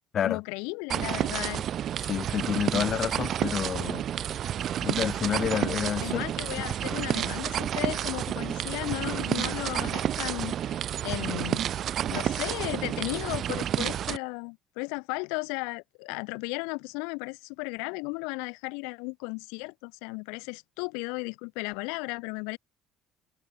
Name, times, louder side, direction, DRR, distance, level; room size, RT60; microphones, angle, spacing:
voice 1, 0.2-1.6 6.0-11.6 12.1-22.6, left 35 dB, 90° left, 2.7 m, -35 dB
sound 1, 0.9-14.2, right 10 dB, 55° right, 4.6 m, -30 dB
voice 2, 2.0-4.3 4.8-6.2, left 9 dB, 50° left, 4.8 m, -29 dB
supercardioid pair, 95°, 0 cm